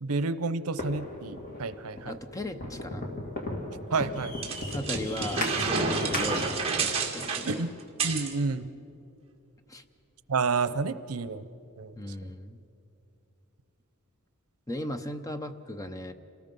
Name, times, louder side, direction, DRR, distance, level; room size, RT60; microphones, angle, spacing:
voice 1, 0.0-2.2 3.9-4.3 7.4-7.7 8.0-8.7 10.3-11.4 11.8-11.9, right 4 dB, 85° right, 14 dB, 0.7 m, -29 dB
sound 1, 0.8-6.7, left 1 dB, 40° left, 2.5 m, -36 dB
voice 2, 2.1-3.1 4.0-4.1 4.7-7.7 9.7-9.8 12.0-12.6 14.7-16.1, left 1 dB, 15° left, 9 dB, 0.7 m, -37 dB
sound 2, 4.4-8.3, right 4 dB, 25° right, 2.1 m, -29 dB
27.5 x 19.0 x 5.4 m, 2.7 s
head